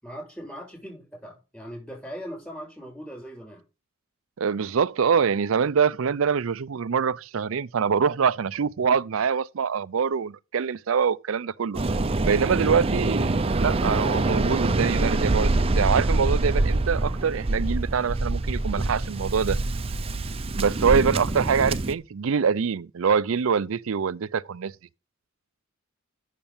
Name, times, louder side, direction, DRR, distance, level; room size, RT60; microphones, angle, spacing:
voice 1, 0.0-3.6, equal, 10° left, 6.6 m, -39 dB
voice 2, 4.4-11.8 12.3-19.6 20.6-24.7, right 6 dB, 70° right, 0.5 m, -24 dB
Waves surf, 11.7-21.9, right 2 dB, 30° right, 0.6 m, -25 dB
8.7 x 6.8 x 7.0 m
head